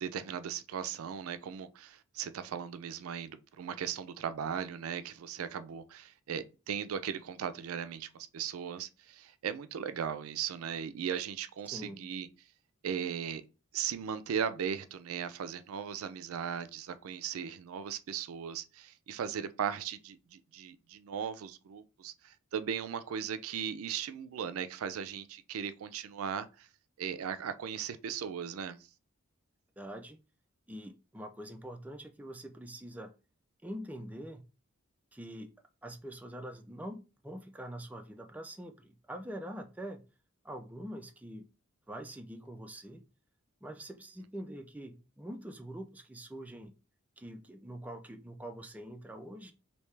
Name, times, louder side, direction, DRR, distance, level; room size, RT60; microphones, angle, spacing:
voice 1, 0.0-12.3 12.8-13.4 13.7-26.7 27.0-28.8, right 8 dB, 85° right, 0.4 m, -37 dB
voice 2, 11.7-12.1 29.8-30.2 30.7-33.1 33.6-34.4 35.1-35.5 35.8-40.0 40.4-41.5 41.9-43.0 43.6-46.7 47.2-49.5, right 1 dB, 5° right, 0.3 m, -44 dB
3.3 x 2.7 x 3.2 m
head